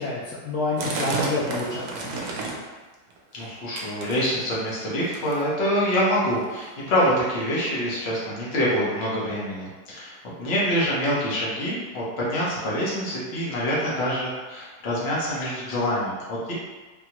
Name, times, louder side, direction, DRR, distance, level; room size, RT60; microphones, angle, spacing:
voice 1, 0.0-2.2 2.5-2.6, left 3 dB, 70° left, -6 dB, 1.0 m, -28 dB
sound 1, 0.8-2.7 3.1-3.5 3.8-4.6 5.1-5.5 6.2-6.3 6.5-6.7 7.3-7.4 8.1-8.2, right 3 dB, 75° right, 1.1 m, -31 dB
voice 2, 3.3-10.1 10.4-16.5, equal, 45° left, -6 dB, 1.0 m, -25 dB
3.6 x 2.1 x 2.9 m, 1.3 s
omnidirectional pair, 1.7 m